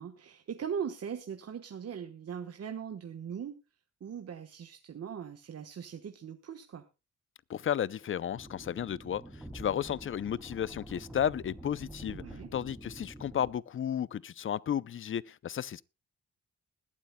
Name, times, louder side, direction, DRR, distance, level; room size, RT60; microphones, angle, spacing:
voice 1, 0.0-3.6 4.0-6.8 12.1-12.5, right 7 dB, 55° right, 1.2 m, -40 dB
voice 2, 7.5-12.2 12.5-15.8, left 9 dB, 45° left, 0.5 m, -33 dB
sound 1, 8.3-13.5, right 1 dB, ahead, 2.6 m, -47 dB
21.0 x 12.0 x 2.2 m
wide cardioid pair, 130°, 30 cm